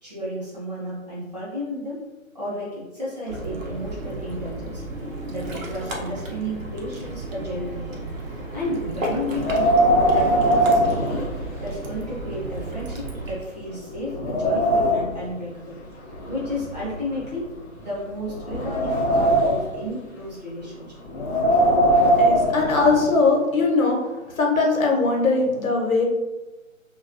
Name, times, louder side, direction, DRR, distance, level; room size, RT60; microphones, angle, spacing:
voice 1, 0.0-2.0 2.3-4.8 5.2-8.0 8.5-9.8 10.1-11.3 11.6-15.8 16.3-21.0, equal, 30° right, -8 dB, 0.7 m, -32 dB
Ocean, 3.3-13.4, right 2 dB, 65° right, 0.7 m, -33 dB
Wind, 9.3-11.9 12.3-12.4 13.0-13.1 13.6-15.2 16.1-17.6 18.2-19.8 21.1-23.2, equal, 55° left, 0.5 m, -21 dB
voice 2, 21.8-26.0, left 3 dB, 75° left, 0 dB, 0.9 m, -21 dB
2.3 x 2.3 x 2.4 m, 1.1 s
hypercardioid pair, 165°, 42 cm